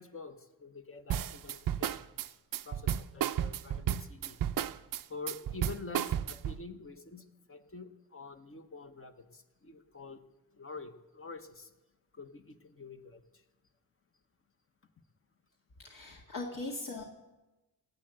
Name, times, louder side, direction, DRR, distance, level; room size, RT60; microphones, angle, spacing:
voice 1, 0.0-2.1 2.6-4.4 5.1-10.2 10.5-11.7 12.2-13.2, left 4 dB, 35° left, 6 dB, 1.2 m, -47 dB
sound 1, 1.1-6.6, right 10 dB, 60° right, 0.6 m, -33 dB
voice 2, 15.8-17.0, left 2 dB, 60° left, -1 dB, 2.1 m, -40 dB
18.0 x 7.8 x 7.8 m, 1.0 s
cardioid pair, 80°, 37 cm